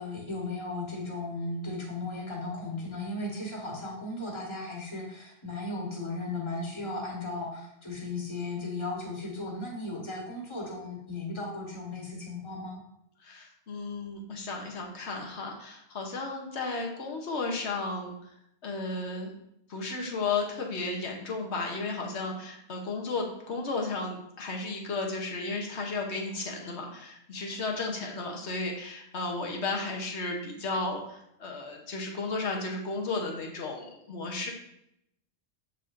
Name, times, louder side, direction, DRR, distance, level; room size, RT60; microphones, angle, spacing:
voice 1, 0.0-12.8, left 2 dB, 25° left, -1 dB, 1.4 m, -36 dB
voice 2, 13.2-18.3 18.6-19.3 19.7-34.5, left 3 dB, 90° left, 1 dB, 1.3 m, -34 dB
6.7 x 6.5 x 2.6 m, 0.77 s
omnidirectional pair, 1.1 m